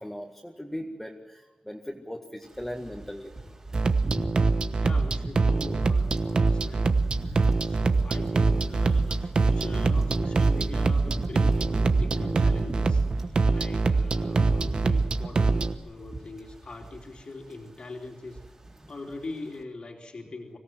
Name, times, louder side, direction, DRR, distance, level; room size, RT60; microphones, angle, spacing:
voice 1, 0.0-3.3 7.3-7.6 13.3-13.5, equal, 5° left, 0 dB, 1.9 m, -39 dB
sound 1, 2.5-13.4 13.8-17.2 17.4-17.7 18.0-18.9 19.1-19.3, right 2 dB, 25° right, 4.1 m, -37 dB
sound 2, 3.7-15.7, right 3 dB, 45° right, 1.1 m, -24 dB
voice 2, 4.8-6.9 7.6-18.4 18.9-20.6, left 2 dB, 50° left, 1 dB, 3.2 m, -42 dB
25.0 x 17.5 x 7.7 m, 1.0 s
wide cardioid pair, 160°, 2 cm